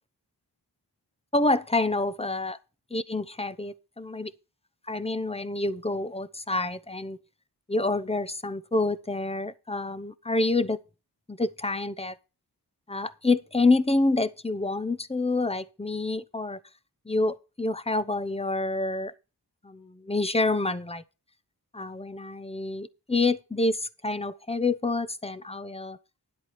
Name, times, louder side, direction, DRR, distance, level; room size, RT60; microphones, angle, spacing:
voice 1, 1.3-2.6 2.9-4.3 4.9-7.2 7.7-10.8 11.3-12.2 12.9-16.6 17.1-19.1 19.6-21.0 21.7-26.0, left 2 dB, 15° left, 0.8 m, -27 dB
11.0 x 7.9 x 4.3 m
wide cardioid pair, 80°, 40 cm